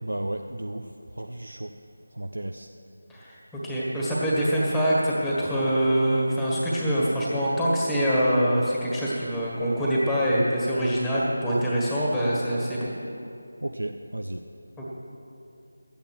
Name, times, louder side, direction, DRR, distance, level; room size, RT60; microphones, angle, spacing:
voice 1, 0.0-1.7 2.1-2.7 13.6-14.4, right 1 dB, 75° right, 5 dB, 0.6 m, -34 dB
voice 2, 3.1-12.9 14.8-14.9, equal, 5° left, -6 dB, 1.6 m, -24 dB
13.0 x 8.7 x 6.1 m, 2.6 s
figure-of-eight pair, 165°, 0 cm